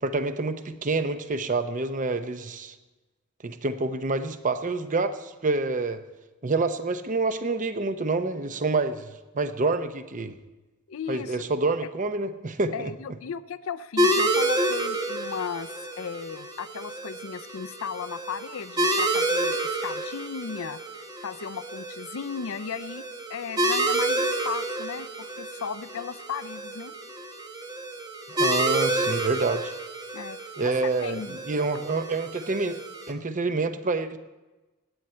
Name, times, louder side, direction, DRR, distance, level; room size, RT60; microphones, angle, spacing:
voice 1, 0.0-2.7 3.4-6.0 6.4-10.4 11.1-12.9 28.3-29.7 30.6-32.8 33.1-34.2, right 3 dB, 35° right, 10 dB, 0.7 m, -27 dB
voice 2, 10.9-11.4 12.7-26.9 30.1-31.4, left 6 dB, 65° left, 13 dB, 0.5 m, -36 dB
sound 1, 14.0-33.1, right 1 dB, 20° right, 1.1 m, -29 dB
16.0 x 9.5 x 4.4 m, 1.1 s
head